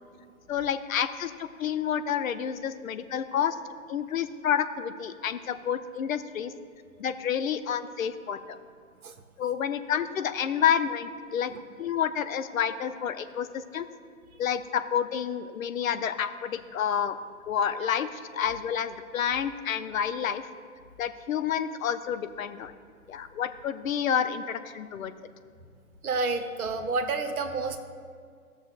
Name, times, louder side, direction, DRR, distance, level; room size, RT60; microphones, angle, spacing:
voice 1, 0.5-3.6 3.9-6.5 7.0-8.6 9.4-11.5 11.8-13.9 14.4-17.2 17.5-20.4 21.0-22.7 23.1-25.1, left 8 dB, 70° left, 11 dB, 0.6 m, -29 dB
voice 2, 26.0-27.8, right 3 dB, 80° right, 6 dB, 0.9 m, -29 dB
16.0 x 6.3 x 2.4 m, 2.1 s
hypercardioid pair, 130°, 43 cm